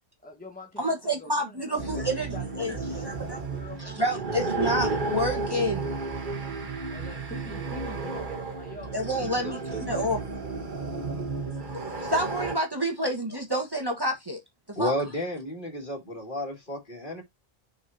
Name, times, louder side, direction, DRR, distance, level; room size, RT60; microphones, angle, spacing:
voice 1, 0.2-3.1 3.5-4.2 6.9-10.1, left 1 dB, 10° left, 1.3 m, -45 dB
voice 2, 0.8-2.7 3.0-3.4 3.8-5.9 8.9-10.2 11.7-14.4 14.8-14.9, equal, 20° right, 1.4 m, -29 dB
sound 1, 1.8-12.6, right 3 dB, 50° right, 1.5 m, -33 dB
voice 3, 14.7-17.2, left 1 dB, 50° left, 2.6 m, -31 dB
6.1 x 5.8 x 2.8 m
omnidirectional pair, 1.1 m